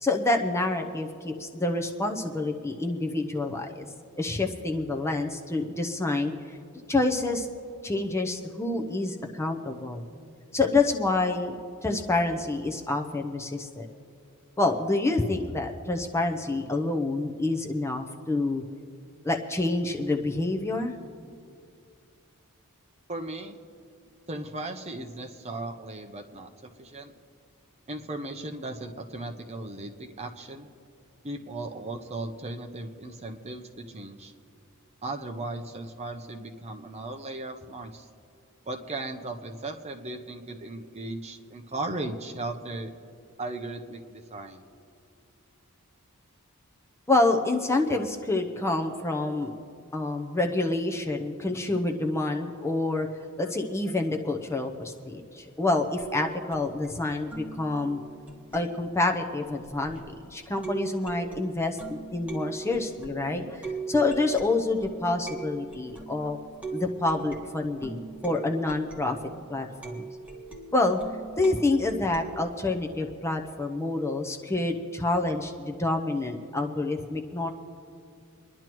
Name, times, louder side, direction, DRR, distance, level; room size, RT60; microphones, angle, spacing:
voice 1, 0.0-3.8 4.2-6.3 6.9-7.5 7.8-10.0 10.5-11.6 11.8-13.9 14.6-18.6 19.2-20.9 47.1-49.5 49.9-53.1 53.4-58.0 58.5-60.0 60.3-66.4 66.7-69.2 69.5-70.0 70.7-71.0 71.4-77.5, left 2 dB, 10° left, 3 dB, 0.7 m, -27 dB
voice 2, 23.1-23.6 24.3-27.1 27.9-30.7 31.2-34.3 35.0-38.1 38.7-42.9 43.4-44.6, right 2 dB, 30° right, 5 dB, 0.7 m, -37 dB
sound 1, 56.0-60.2 60.6-72.3, right 4 dB, 5° right, 1.5 m, -40 dB
25.0 x 10.5 x 3.0 m, 2.4 s
head